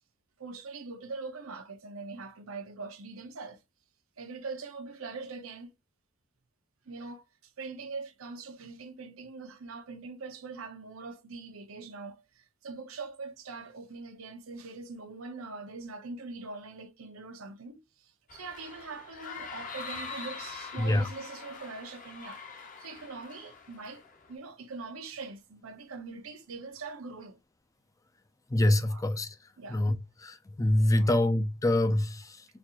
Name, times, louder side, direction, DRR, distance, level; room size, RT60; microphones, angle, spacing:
voice 1, 0.4-3.6 4.2-5.7 6.9-22.4 22.8-24.0 24.3-27.4 28.9-29.0 29.6-29.8 30.9-31.2, right 4 dB, 90° right, 0.7 m, -42 dB
sound 1, 18.3-24.3, left 5 dB, 40° left, 0.8 m, -44 dB
voice 2, 20.8-21.1 28.5-29.4 29.7-32.4, left 1 dB, 15° left, 0.3 m, -26 dB
4.0 x 2.4 x 2.8 m
head